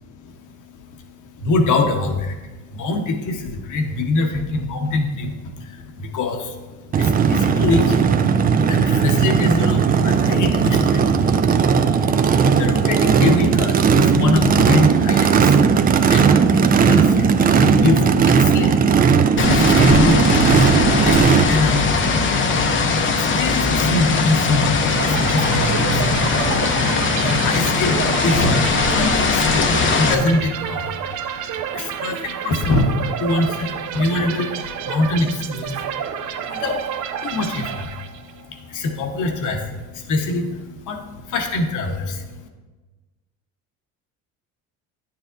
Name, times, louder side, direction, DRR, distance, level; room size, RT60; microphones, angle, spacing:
voice 1, 0.1-42.5, left 2 dB, 55° left, 4 dB, 1.2 m, -24 dB
Race car auto racing / Idling / Accelerating revving vroom, 6.9-21.4, right 6 dB, 25° right, 0.4 m, -16 dB
sound 1, 19.4-30.1, left 4 dB, 35° left, 0.8 m, -19 dB
sound 2, 24.9-38.5, right 8 dB, 55° right, 0.7 m, -29 dB
9.6 x 7.0 x 2.6 m, 1.2 s
supercardioid pair, 85°, 36 cm